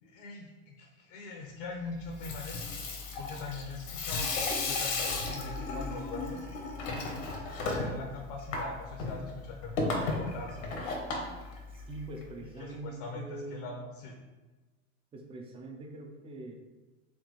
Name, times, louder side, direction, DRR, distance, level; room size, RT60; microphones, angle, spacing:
voice 1, 0.0-2.8 3.2-6.4 7.7-10.6 12.6-14.2, left 3 dB, 50° left, 1 dB, 0.7 m, -42 dB
Water tap faucet / Sink (filling or washing), 2.0-12.2, left 3 dB, 70° left, 1.0 m, -35 dB
voice 2, 11.7-13.7 15.1-16.6, right 2 dB, 15° right, 3 dB, 0.4 m, -43 dB
4.3 x 2.9 x 3.1 m, 1.2 s
hypercardioid pair, 100°, 40 cm